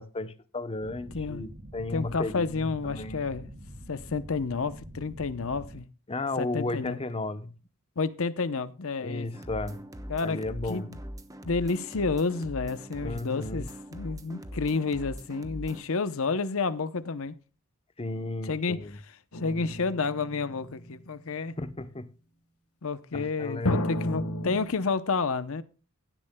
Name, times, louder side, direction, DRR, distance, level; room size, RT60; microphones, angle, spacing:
voice 1, 0.0-3.2 6.1-7.5 9.0-9.8 10.2-10.9 13.0-13.7 18.0-19.0 21.6-22.1 23.1-23.9, left 2 dB, 25° left, 0.8 m, -34 dB
sound 1, 0.8-5.8, equal, 40° right, 1.6 m, -45 dB
voice 2, 1.9-3.5 3.9-5.8 6.4-7.0 8.0-9.3 10.1-11.0 11.4-17.3 18.4-18.8 19.3-21.5 22.8-25.6, left 4 dB, 65° left, 0.8 m, -30 dB
sound 2, 9.3-15.8, equal, 15° right, 1.0 m, -41 dB
sound 3, 19.3-21.1 23.6-24.6, left 1 dB, 85° left, 1.4 m, -32 dB
16.5 x 12.0 x 2.2 m
head